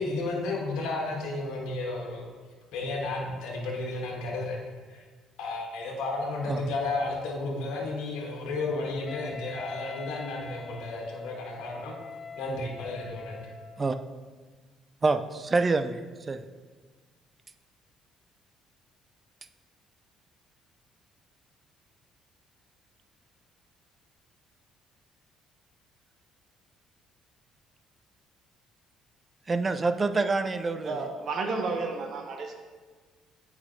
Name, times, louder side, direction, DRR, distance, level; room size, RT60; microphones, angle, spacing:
voice 1, 0.0-2.2 2.7-4.6 4.9-5.0 5.4-12.0 12.4-13.5, left 2 dB, 80° left, -1 dB, 1.3 m, -32 dB
Wind instrument woodwind instrument, 9.1-14.1, left 4 dB, 40° left, 0.8 m, -44 dB
voice 2, 15.0-16.4 29.5-31.0, right 3 dB, 30° right, 10 dB, 0.4 m, -27 dB
voice 3, 30.8-32.5, right 4 dB, 60° right, 3 dB, 1.0 m, -31 dB
8.6 x 4.9 x 2.7 m, 1.4 s
supercardioid pair, 70°, 0 cm